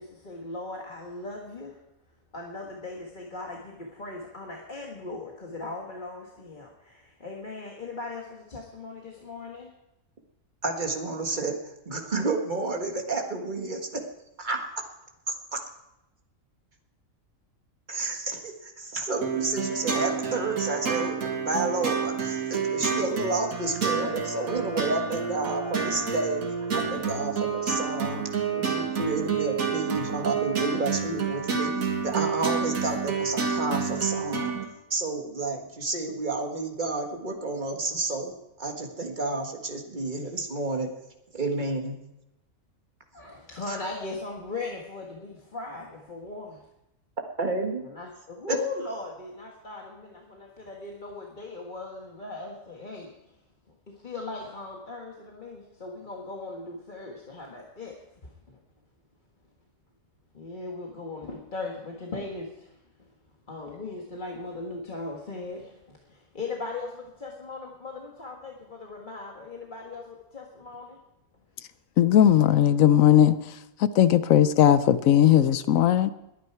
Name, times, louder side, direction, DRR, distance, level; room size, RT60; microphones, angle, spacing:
voice 1, 0.0-1.8 2.3-9.7 43.1-46.6 47.8-53.1 53.9-58.0 58.5-58.6 60.3-62.7 63.0-63.1 63.5-71.0, left 3 dB, 35° left, -1 dB, 1.6 m, -38 dB
voice 2, 10.6-14.0 14.4-14.8 15.5-15.6 17.9-26.4 26.7-28.2 28.5-31.8 32.0-34.5 34.9-38.3 38.6-40.9 41.3-42.0 43.7-43.8 47.4-47.8 48.5-48.6, right 3 dB, 35° right, 3 dB, 1.7 m, -30 dB
sound 1, 19.2-34.6, right 6 dB, 85° right, 2.1 m, -29 dB
voice 3, 72.0-73.4 73.8-76.1, left 10 dB, 75° left, 14 dB, 1.0 m, -18 dB
21.0 x 9.4 x 4.6 m, 0.90 s
omnidirectional pair, 1.5 m